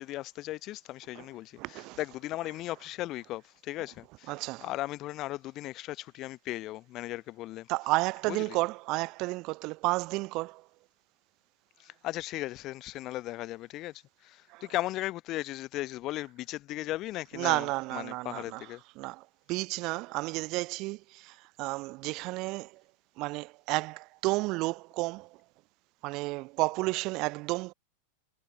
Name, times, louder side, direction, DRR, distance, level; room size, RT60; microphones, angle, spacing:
voice 1, 0.0-4.3 4.6-7.7 8.3-8.6 11.8-18.8, left 16 dB, 35° left, 0.8 m, -37 dB
voice 2, 1.6-2.0 4.3-4.7 7.7-10.6 14.5-14.6 17.3-18.7 19.0-19.2 19.5-22.8 23.2-25.4 26.0-27.7, right 23 dB, 40° right, 0.5 m, -32 dB
figure-of-eight pair, 90°, 0 cm